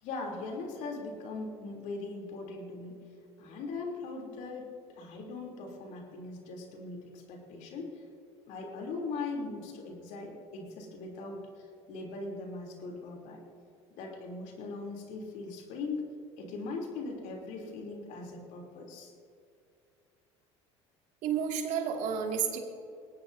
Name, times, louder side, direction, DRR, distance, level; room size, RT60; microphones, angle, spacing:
voice 1, 0.0-3.0 3.4-4.7 5.0-8.0 8.5-13.4 14.0-16.0 16.4-19.1, left 3 dB, 65° left, 0 dB, 3.5 m, -40 dB
voice 2, 21.2-22.6, right 7 dB, 60° right, 2 dB, 2.5 m, -31 dB
21.0 x 18.5 x 2.8 m, 2.4 s
hypercardioid pair, 80°, 14 cm